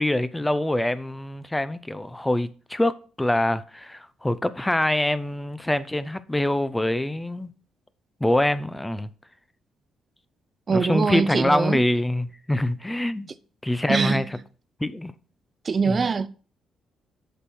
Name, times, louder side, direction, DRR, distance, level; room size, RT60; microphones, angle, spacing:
voice 1, 0.0-7.5 8.2-9.1 10.7-13.3 13.6-14.4 14.8-15.1 15.9-16.0, left 1 dB, 10° left, 0.6 m, -25 dB
voice 2, 10.7-11.8 13.9-14.2 15.7-16.3, right 5 dB, 40° right, 0.5 m, -23 dB
8.1 x 6.1 x 4.2 m
cardioid pair, 90°, 0 cm